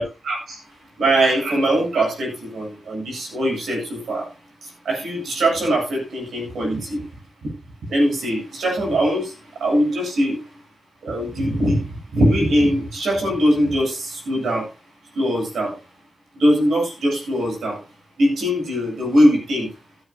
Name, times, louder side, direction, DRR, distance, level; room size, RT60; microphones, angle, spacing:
voice 1, 0.0-4.3 4.6-7.1 7.4-7.5 7.9-10.5 11.0-14.7 15.1-15.8 16.3-17.8 18.2-19.7, equal, 85° right, 0 dB, 7.9 m, -21 dB
17.0 x 9.9 x 2.9 m, 0.29 s
supercardioid pair, 40°, 0 cm